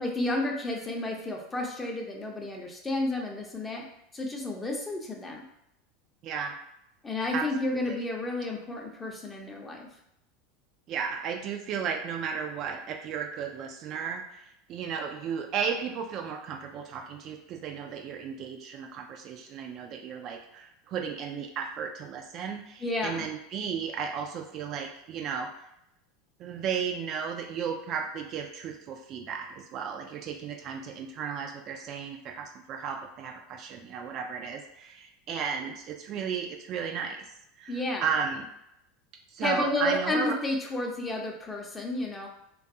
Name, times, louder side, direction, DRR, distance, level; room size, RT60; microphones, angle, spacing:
voice 1, 0.0-3.8 4.1-5.5 7.0-9.9 22.8-23.3 37.7-38.1 39.4-42.3, left 2 dB, 15° left, 0 dB, 0.6 m, -31 dB
voice 2, 6.2-6.5 7.3-7.5 7.9-8.0 10.9-25.7 26.4-37.3 37.6-38.5 39.3-40.4, right 6 dB, 45° right, 3 dB, 0.3 m, -34 dB
2.5 x 2.3 x 2.6 m, 0.80 s
figure-of-eight pair, 80°, 0 cm